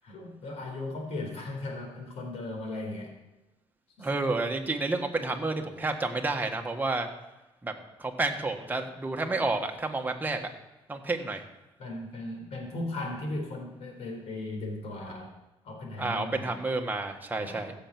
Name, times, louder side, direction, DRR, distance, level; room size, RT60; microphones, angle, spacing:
voice 1, 0.0-3.1 4.0-4.1 11.8-15.3 15.6-16.6 17.4-17.7, left 2 dB, 70° left, 2 dB, 4.2 m, -37 dB
voice 2, 4.0-7.1 7.6-7.7 8.0-10.5 10.9-11.4 16.0-17.7, right 3 dB, 15° right, 3 dB, 1.5 m, -30 dB
15.5 x 7.0 x 6.0 m, 1.0 s
cardioid pair, 105°, 11 cm